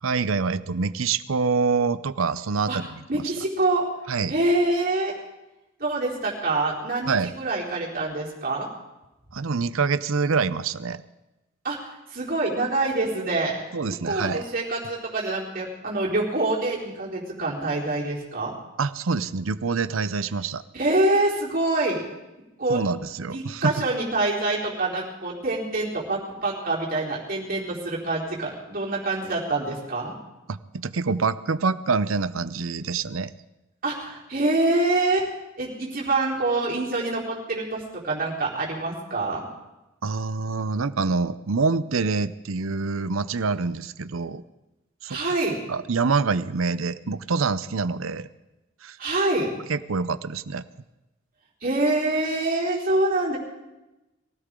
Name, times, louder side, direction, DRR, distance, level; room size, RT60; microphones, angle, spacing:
voice 1, 0.0-2.9 4.1-4.3 7.1-7.3 9.3-11.0 13.7-14.4 18.8-20.6 22.7-23.8 30.5-33.3 40.0-44.4 45.0-45.2 45.7-48.3 48.8-49.0 49.7-50.7, right 4 dB, 85° right, 15 dB, 0.6 m, -26 dB
voice 2, 3.1-3.8 4.3-5.2 5.8-8.7 11.6-11.8 12.1-13.6 14.0-18.5 20.7-22.0 22.6-22.8 23.3-30.1 33.8-35.3 35.6-39.4 45.1-45.6 49.0-49.5 51.6-53.4, right 2 dB, 45° right, -4 dB, 4.1 m, -25 dB
23.0 x 16.0 x 3.8 m, 1.0 s
head